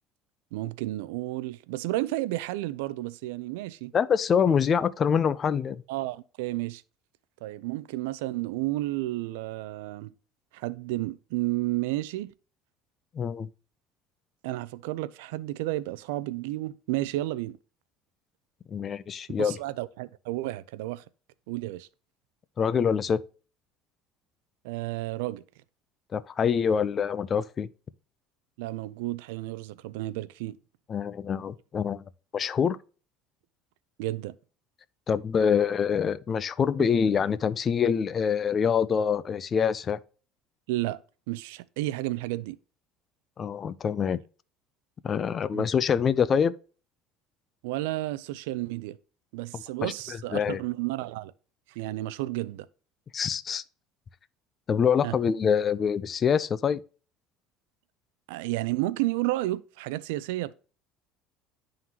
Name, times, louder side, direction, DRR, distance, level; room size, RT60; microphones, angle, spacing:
voice 1, 0.5-3.9 5.9-6.8 7.4-10.1 10.5-12.3 14.4-17.6 19.4-21.0 21.5-21.9 24.6-25.4 28.6-30.6 34.0-34.4 40.7-41.0 41.3-42.6 45.5-45.6 47.6-49.0 49.3-51.3 51.7-52.7 55.0-55.2 58.3-60.6, right 17 dB, 90° right, 0.3 m, -32 dB
voice 2, 3.9-5.8 13.1-13.5 18.7-19.6 22.6-23.2 26.1-27.7 30.9-32.0 32.3-32.8 35.1-40.0 43.4-44.2 45.0-46.5 49.5-50.6 53.1-53.6 54.7-56.8, left 7 dB, 35° left, 0.4 m, -25 dB
11.0 x 3.8 x 2.8 m
cardioid pair, 125°, 0 cm